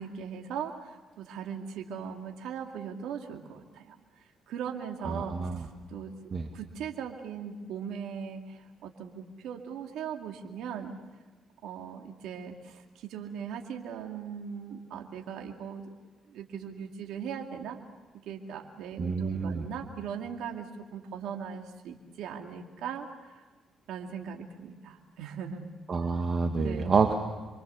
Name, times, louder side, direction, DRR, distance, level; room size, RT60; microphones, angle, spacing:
voice 1, 0.0-4.0 4.5-11.0 11.6-15.8 16.3-17.8 18.2-23.4 23.9-25.7 26.6-27.0, right 7 dB, 85° right, 2 dB, 2.3 m, -39 dB
voice 2, 5.0-5.6 6.3-6.5 19.0-19.7 25.9-27.1, right 5 dB, 45° right, 4 dB, 1.9 m, -28 dB
28.0 x 23.5 x 7.0 m, 1.3 s
cardioid pair, 90°, 0 cm